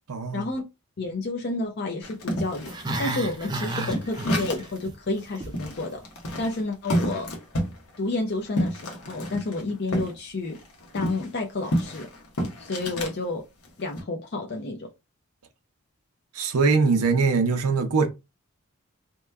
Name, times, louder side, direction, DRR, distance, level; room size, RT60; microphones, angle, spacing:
voice 1, 0.1-0.5 16.4-18.1, right 4 dB, 80° right, 0.6 m, -22 dB
voice 2, 1.0-2.7 3.0-6.0 6.4-7.3 8.0-10.6 10.9-12.1 12.6-13.4 13.8-14.9, left 2 dB, 45° left, 0.5 m, -30 dB
sound 1, 2.0-4.8 5.2-5.3 5.5-10.1 10.4-13.2 13.6-14.0, equal, 85° left, 1.0 m, -30 dB
Growling, 2.6-4.9 5.2-5.6 5.9-6.0, right 2 dB, 20° right, 0.4 m, -32 dB
3.0 x 2.2 x 3.3 m
head